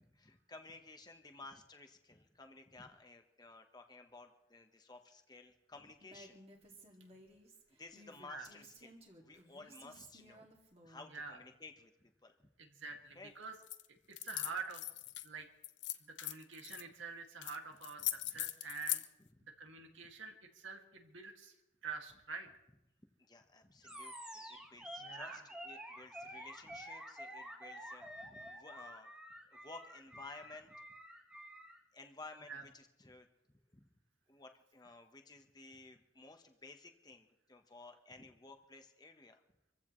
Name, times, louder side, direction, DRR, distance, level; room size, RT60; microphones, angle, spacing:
voice 1, 0.0-6.4 7.8-10.5 10.8-12.5 13.1-13.3 18.2-18.4 23.2-29.1 29.5-30.7 31.9-33.3 33.7-33.9 34.3-39.4, left 3 dB, 20° left, 5 dB, 1.2 m, -55 dB
Female speech woman speaking, 6.0-11.1, right 1 dB, 30° right, 2.3 m, -58 dB
voice 2, 12.6-13.6 14.1-14.9 15.2-15.5 16.0-19.0 19.6-21.5 21.8-22.5 25.0-25.5 32.5-32.6, right 5 dB, 75° right, 3 dB, 2.3 m, -47 dB
sound 1, 13.6-13.8 14.1-15.3 15.6-16.8 17.4-17.6 17.8-19.0, left 15 dB, 65° left, 0.8 m, -39 dB
Animal, 23.8-31.8, equal, 5° right, 1.6 m, -49 dB
27.0 x 15.0 x 3.2 m, 0.92 s
head